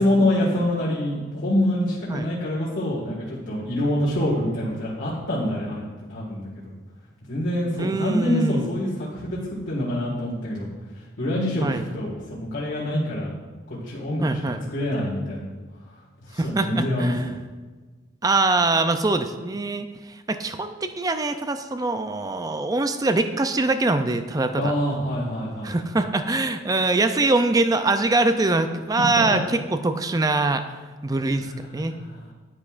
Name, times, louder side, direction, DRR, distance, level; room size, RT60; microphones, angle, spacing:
voice 1, 0.0-6.7 7.3-9.4 9.7-10.7 11.2-13.3 13.7-14.4 14.7-15.5 16.3-17.4 24.6-25.8 29.2-29.4 31.4-32.2, left 1 dB, 85° left, -7 dB, 1.8 m, -26 dB
voice 2, 7.8-8.7 11.6-11.9 14.2-14.6 16.3-17.3 18.2-24.7 25.6-30.7 31.0-31.9, right 2 dB, 20° right, 9 dB, 0.4 m, -23 dB
9.5 x 9.3 x 2.5 m, 1.3 s
head